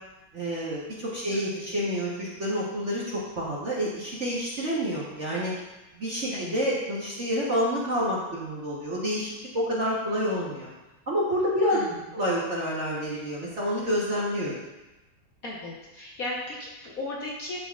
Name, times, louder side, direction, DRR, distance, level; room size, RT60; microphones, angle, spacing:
voice 1, 0.3-5.5 5.9-10.7 11.1-11.8 12.1-14.5, equal, 45° right, -6 dB, 1.1 m, -28 dB
voice 2, 1.3-1.8 6.3-6.6 11.7-11.9 15.4-17.6, left 2 dB, 55° left, -4 dB, 1.1 m, -36 dB
11.5 x 4.1 x 2.4 m, 1.1 s
omnidirectional pair, 2.3 m